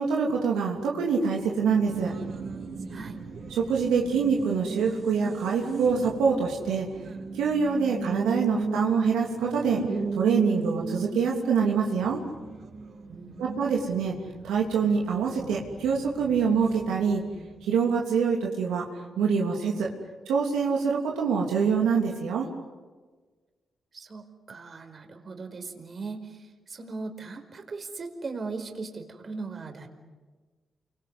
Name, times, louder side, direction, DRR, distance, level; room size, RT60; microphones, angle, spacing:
voice 1, 0.0-2.1 3.5-6.9 7.3-9.8 10.1-12.2 13.4-14.1 14.4-17.2 17.6-18.9 19.2-19.9 20.3-22.5, right 6 dB, 85° right, -1 dB, 3.2 m, -25 dB
Race car auto racing, 1.4-17.6, right 4 dB, 70° right, 6.9 m, -36 dB
voice 2, 13.1-13.7 23.9-29.9, right 4 dB, 50° right, 6 dB, 5.0 m, -38 dB
29.5 x 25.0 x 8.2 m, 1.4 s
supercardioid pair, 50°, 0 cm